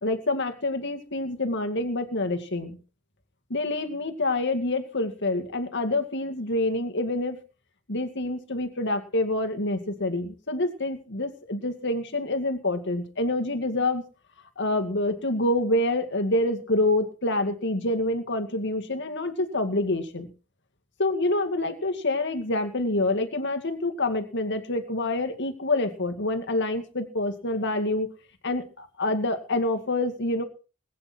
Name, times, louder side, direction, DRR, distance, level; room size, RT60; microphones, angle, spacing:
voice 1, 0.0-2.8 3.5-7.4 7.9-14.0 14.6-20.3 21.0-28.1 28.4-30.4, left 2 dB, 60° left, 7 dB, 2.3 m, -27 dB
21.0 x 9.7 x 4.5 m, 0.36 s
head